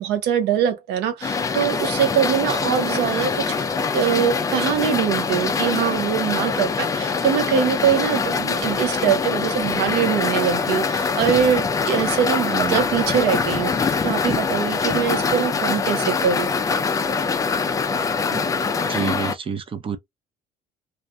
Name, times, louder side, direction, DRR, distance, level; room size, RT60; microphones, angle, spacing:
voice 1, 0.0-3.5 3.9-16.5, right 8 dB, 85° right, 0.6 m, -23 dB
sound 1, 1.2-19.3, left 5 dB, 20° left, 0.3 m, -23 dB
voice 2, 12.5-12.9 18.3-18.4 18.9-20.0, right 6 dB, 30° right, 0.5 m, -28 dB
2.3 x 2.2 x 2.8 m
cardioid pair, 110°, 17 cm